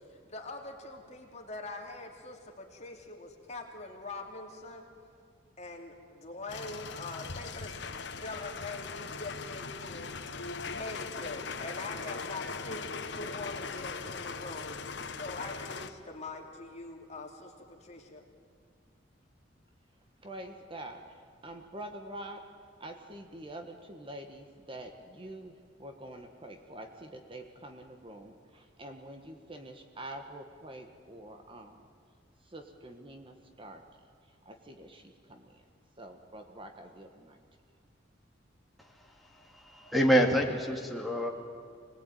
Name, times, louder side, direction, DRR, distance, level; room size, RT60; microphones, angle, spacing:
voice 1, 0.0-4.9 5.6-10.2 10.6-14.8 15.1-18.2, left 2 dB, 35° left, 2 dB, 2.9 m, -43 dB
sound 1, 6.5-15.9, left 5 dB, 65° left, 1.2 m, -40 dB
voice 2, 20.2-22.4 22.8-31.9 32.4-33.8 34.3-35.6 36.0-37.4, right 1 dB, 30° right, 5 dB, 1.4 m, -46 dB
voice 3, 39.6-41.3, equal, ahead, 0 dB, 2.4 m, -26 dB
26.0 x 19.5 x 9.2 m, 2.2 s
head